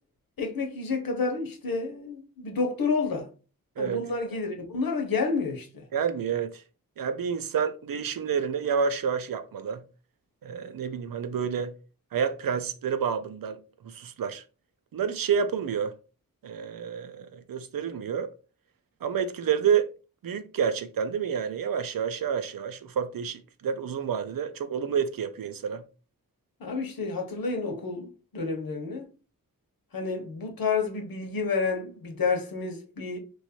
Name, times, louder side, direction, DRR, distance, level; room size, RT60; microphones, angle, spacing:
voice 1, 0.4-3.3 3.8-5.9 26.6-29.1 29.9-33.2, left 4 dB, 80° left, 1.1 m, -30 dB
voice 2, 5.9-6.6 7.0-9.8 10.4-11.7 12.1-14.4 14.9-15.9 16.4-18.3 19.0-19.9 20.2-25.8, right 7 dB, 75° right, 0.6 m, -29 dB
3.1 x 2.6 x 4.2 m
wide cardioid pair, 75°, 34 cm